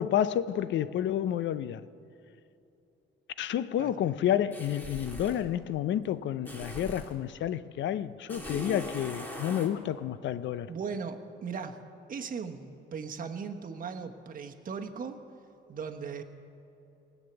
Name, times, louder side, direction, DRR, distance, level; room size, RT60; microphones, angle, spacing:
voice 1, 0.0-1.8 3.4-10.7, left 10 dB, 70° left, 0.6 m, -30 dB
sound 1, 4.5-5.5 6.4-7.2 8.3-9.7, equal, 10° left, 2.5 m, -40 dB
voice 2, 10.7-11.8 12.1-15.2 15.7-16.2, right 5 dB, 45° right, 1.1 m, -38 dB
18.5 x 7.3 x 7.9 m
cardioid pair, 90°, 20 cm